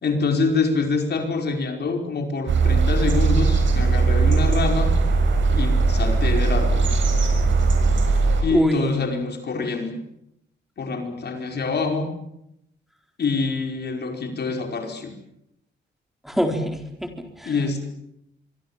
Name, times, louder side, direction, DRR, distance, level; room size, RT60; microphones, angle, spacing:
voice 1, 0.0-4.9 5.5-6.8 8.4-10.0 10.8-12.1 13.2-15.1 17.5-17.9, left 4 dB, 60° left, 4 dB, 5.1 m, -25 dB
sound 1, 2.5-8.4, right 4 dB, 75° right, 7.2 m, -19 dB
voice 2, 8.5-9.0 16.2-17.5, equal, ahead, 4 dB, 4.0 m, -24 dB
25.5 x 24.0 x 7.4 m, 0.78 s
cardioid pair, 105°, 20 cm